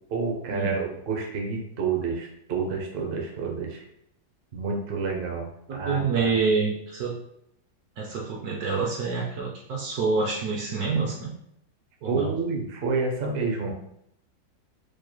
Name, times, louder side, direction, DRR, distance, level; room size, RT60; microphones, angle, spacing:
voice 1, 0.1-3.8 4.5-6.3 12.1-13.7, right 4 dB, 80° right, 0 dB, 0.5 m, -29 dB
voice 2, 5.7-7.2 8.0-11.3 12.0-12.3, right 4 dB, 65° right, -2 dB, 1.0 m, -27 dB
4.5 x 3.0 x 2.3 m, 0.74 s
omnidirectional pair, 2.1 m